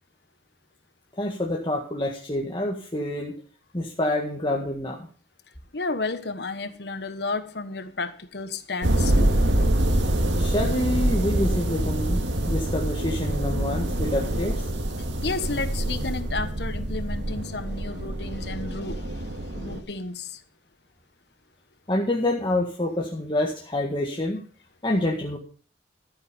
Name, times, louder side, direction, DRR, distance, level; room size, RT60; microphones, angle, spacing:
voice 1, 1.2-3.3 3.7-5.1 10.4-14.6 21.9-24.4 24.8-25.4, left 1 dB, 25° left, 1.8 m, -27 dB
voice 2, 5.7-9.3 15.2-19.0 19.5-20.3, left 3 dB, 65° left, 1.2 m, -32 dB
sound 1, 8.8-19.8, right 1 dB, 90° right, 2.0 m, -25 dB
13.5 x 9.1 x 5.3 m
head